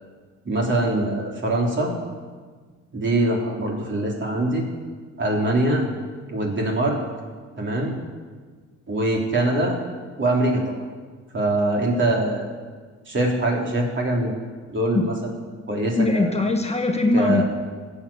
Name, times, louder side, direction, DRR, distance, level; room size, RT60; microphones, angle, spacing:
voice 1, 0.5-1.9 2.9-4.7 5.2-5.9 6.3-7.0 7.6-8.0 8.9-9.8 10.2-10.8 11.3-12.5 13.1-14.3 14.7-15.3 15.7-16.3 17.1-17.4, right 1 dB, 40° right, -1 dB, 3.5 m, -23 dB
voice 2, 16.0-17.4, left 2 dB, 20° left, 4 dB, 1.2 m, -21 dB
15.5 x 8.1 x 7.2 m, 1.5 s
cardioid pair, 90°, 30 cm